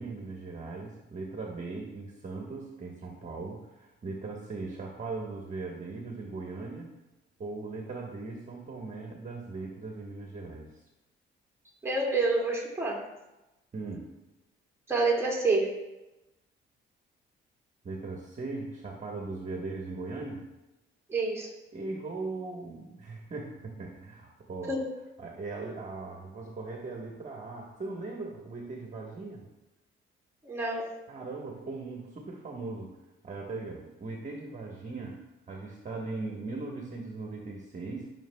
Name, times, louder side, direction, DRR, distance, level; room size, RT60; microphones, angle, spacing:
voice 1, 0.0-6.9 7.4-10.7 13.7-14.1 17.8-20.5 21.7-24.8 25.2-29.5 31.1-32.9 33.2-35.2 35.5-38.1, right 3 dB, 35° right, -1 dB, 1.4 m, -39 dB
voice 2, 11.8-13.1 14.9-15.8 21.1-21.5 24.7-24.9 30.4-31.0, right 3 dB, 15° right, -2 dB, 2.3 m, -28 dB
15.0 x 6.2 x 2.3 m, 0.99 s
cardioid pair, 90°, 20 cm